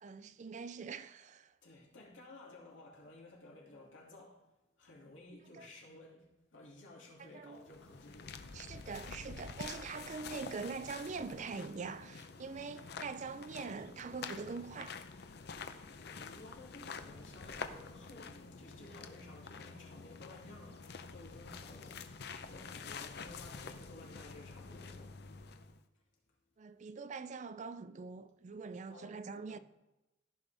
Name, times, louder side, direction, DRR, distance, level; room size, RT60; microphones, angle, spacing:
voice 1, 0.0-1.5 5.5-5.7 7.2-7.6 8.5-15.0 26.6-29.6, right 5 dB, 40° right, 0.4 m, -43 dB
voice 2, 1.6-4.5 4.8-8.4 15.7-22.0 22.5-25.3 28.9-29.6, left 2 dB, 85° left, 2.7 m, -55 dB
sound 1, 7.5-25.8, left 5 dB, 55° left, 0.6 m, -48 dB
14.5 x 5.6 x 3.4 m
head